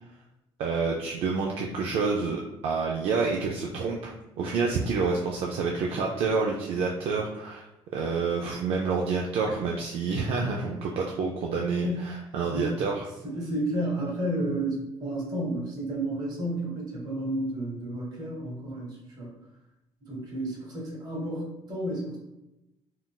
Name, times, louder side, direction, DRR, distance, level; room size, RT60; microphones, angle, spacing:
voice 1, 0.6-7.6 7.9-13.1, right 4 dB, 60° right, 0 dB, 0.4 m, -28 dB
voice 2, 12.5-12.8 13.2-19.3 20.0-22.2, right 1 dB, 35° right, -2 dB, 1.0 m, -31 dB
3.7 x 2.4 x 2.2 m, 0.92 s
cardioid pair, 160°, 11 cm